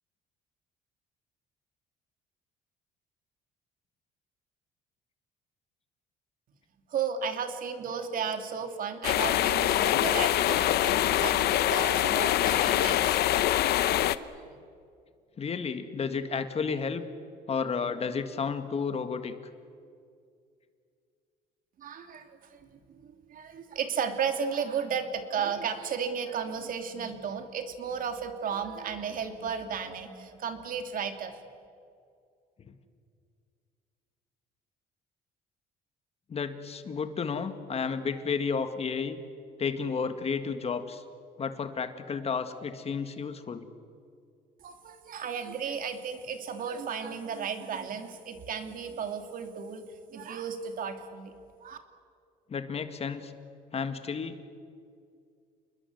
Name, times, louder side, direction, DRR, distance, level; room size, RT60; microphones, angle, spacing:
voice 1, 6.9-13.2 14.3-14.6 21.8-31.4 44.6-49.8 50.1-51.3 51.6-51.8, right 6 dB, 55° right, 7 dB, 2.8 m, -34 dB
sound 1, 9.0-14.2, left 13 dB, 70° left, 0.9 m, -24 dB
voice 2, 15.4-17.1 17.5-19.4 32.7-32.8 36.3-39.2 39.6-41.0 41.4-43.7 52.5-53.3 53.7-54.5, left 5 dB, 35° left, 9 dB, 1.9 m, -32 dB
28.5 x 21.0 x 8.0 m, 2.3 s
cardioid pair, 110°, 17 cm